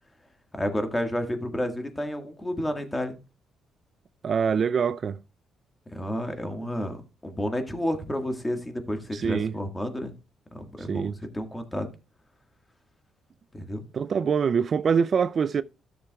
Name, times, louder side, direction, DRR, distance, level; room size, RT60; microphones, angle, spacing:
voice 1, 0.5-3.2 5.9-10.1 10.5-11.9 13.5-13.8, equal, 15° left, 1.7 m, -31 dB
voice 2, 4.2-5.2 9.1-9.5 10.8-11.2 13.9-15.6, right 6 dB, 50° right, 0.3 m, -24 dB
13.0 x 6.8 x 2.3 m
cardioid pair, 90°, 0 cm